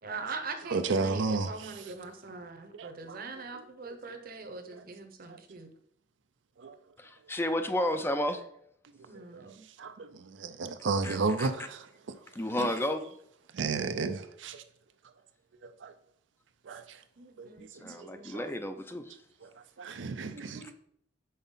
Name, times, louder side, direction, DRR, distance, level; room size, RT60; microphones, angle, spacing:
voice 1, 0.0-5.7 9.1-9.6 17.2-18.4 20.3-20.7, right 4 dB, 50° right, 0.8 m, -42 dB
voice 2, 0.7-1.9 2.7-4.0 4.7-4.8 5.3-5.4 6.6-6.8 9.1-12.2 12.4-12.7 13.5-14.6 15.6-15.9 16.6-17.0 17.4-17.7 17.9-18.5 19.4-19.5 19.8-20.7, right 4 dB, 85° right, 0.5 m, -34 dB
voice 3, 7.0-8.4 11.0-11.5 12.4-13.1 17.8-19.1, left 1 dB, 15° left, 0.4 m, -32 dB
5.6 x 4.1 x 5.5 m
head